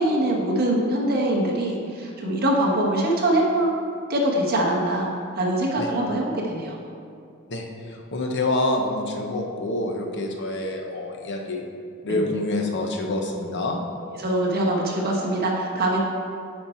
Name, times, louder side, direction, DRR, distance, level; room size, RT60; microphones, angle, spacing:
voice 1, 0.0-3.7 4.1-5.1 5.4-6.8 12.1-12.2 14.2-16.0, right 1 dB, 50° right, -2 dB, 1.2 m, -23 dB
voice 2, 7.5-11.6 12.0-13.8, left 2 dB, 55° left, 2 dB, 0.9 m, -27 dB
9.4 x 4.4 x 4.4 m, 2.4 s
head